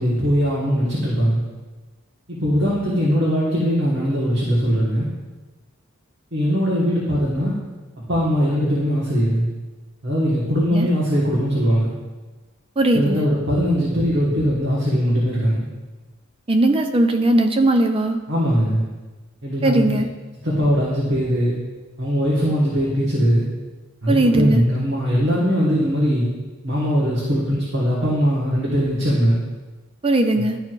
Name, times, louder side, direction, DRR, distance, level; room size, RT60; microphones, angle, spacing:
voice 1, 0.0-1.4 2.3-5.1 6.3-7.5 8.1-9.5 10.0-11.9 12.9-15.6 18.3-18.9 19.4-19.9 20.4-21.5 22.0-23.5 24.0-26.3 26.6-29.4 30.4-30.5, equal, 60° right, -6 dB, 1.5 m, -20 dB
voice 2, 12.8-13.3 16.5-18.2 19.6-20.1 24.1-24.6 30.0-30.6, right 1 dB, 25° right, 5 dB, 0.5 m, -18 dB
12.0 x 4.6 x 2.5 m, 1.2 s
head